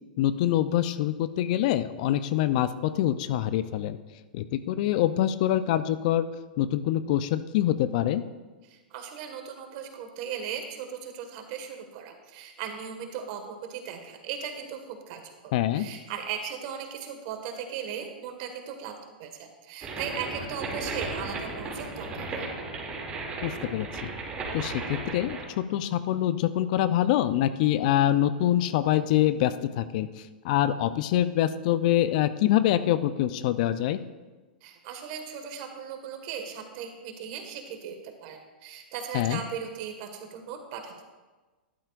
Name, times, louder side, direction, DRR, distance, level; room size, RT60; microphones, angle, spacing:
voice 1, 0.2-4.0 4.3-6.3 6.6-8.2 15.5-15.9 23.4-24.1 24.5-30.1 30.4-34.0 39.1-39.4, left 12 dB, 55° left, 13 dB, 0.5 m, -25 dB
voice 2, 8.6-22.5 34.6-41.0, right 7 dB, 50° right, 5 dB, 1.8 m, -38 dB
sound 1, 19.8-25.5, right 3 dB, 25° right, 2.6 m, -35 dB
13.0 x 11.5 x 2.5 m, 1.3 s
hypercardioid pair, 110°, 5 cm